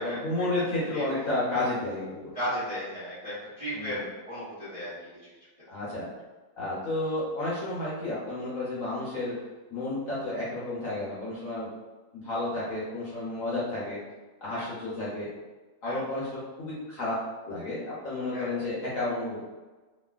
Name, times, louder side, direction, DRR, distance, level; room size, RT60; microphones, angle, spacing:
voice 1, 0.0-2.3 3.7-4.0 5.7-6.1 6.6-9.3 9.7-11.7 12.1-14.0 14.4-15.3 15.8-17.1 17.5-19.4, left 2 dB, 60° left, -8 dB, 1.0 m, -31 dB
voice 2, 2.3-4.9 14.5-14.7 15.8-16.0 18.3-18.5, equal, 30° right, -11 dB, 0.7 m, -35 dB
3.0 x 2.4 x 2.3 m, 1.2 s
omnidirectional pair, 2.0 m